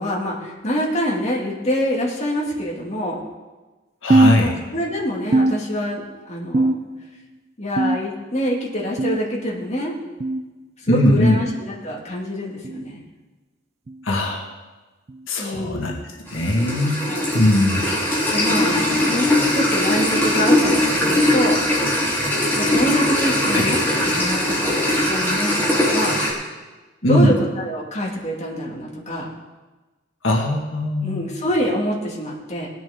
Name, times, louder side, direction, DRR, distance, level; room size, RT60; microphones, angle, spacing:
voice 1, 0.0-3.2 4.4-6.7 7.6-9.9 10.8-13.0 15.4-16.1 17.0-17.2 18.3-21.6 22.6-26.2 27.0-29.3 31.0-32.7, equal, 35° left, -3 dB, 2.3 m, -25 dB
voice 2, 4.0-4.5 10.9-11.4 14.0-14.4 15.3-15.9 16.3-17.0 17.3-17.9 23.5-23.8 27.0-27.3 30.2-31.2, left 1 dB, 85° left, 0 dB, 1.7 m, -19 dB
sound 1, 4.1-5.0 5.3-6.1 6.5-7.2 7.8-8.4 9.0-9.4 10.2-10.4 11.4-11.6 12.6-12.9 13.9-14.1 15.1-15.3 16.3-16.5 17.5-17.6 18.8-18.9, right 2 dB, 35° right, 0.4 m, -21 dB
sound 2, 16.3-26.3, left 1 dB, 10° left, 3.2 m, -20 dB
19.0 x 10.5 x 3.7 m, 1.2 s
head